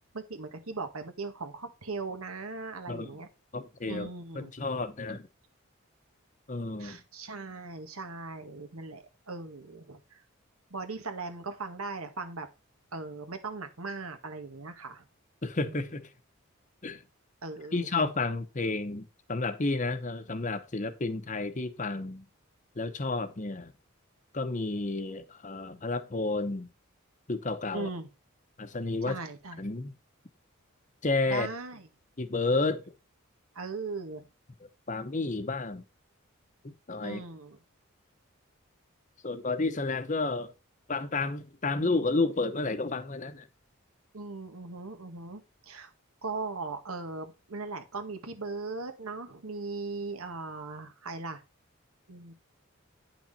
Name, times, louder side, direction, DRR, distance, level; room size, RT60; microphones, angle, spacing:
voice 1, 0.1-3.3 3.9-4.5 6.8-10.2 10.7-12.5 12.9-15.0 15.7-15.8 17.4-18.0 27.7-28.1 29.0-29.6 31.3-31.9 33.5-34.3 37.0-37.6 44.1-45.9 46.2-51.4 52.1-52.3, right 3 dB, 90° right, 1.7 m, -39 dB
voice 2, 3.5-4.1 4.4-5.3 6.5-7.0 15.4-16.1 16.8-17.0 17.7-22.3 22.8-23.7 24.3-26.7 27.3-27.9 28.6-29.2 29.6-29.9 31.0-31.5 32.2-32.8 34.9-35.8 36.6-37.2 39.2-40.5 40.9-43.5, left 3 dB, 35° left, 0.9 m, -31 dB
9.6 x 6.0 x 4.2 m
head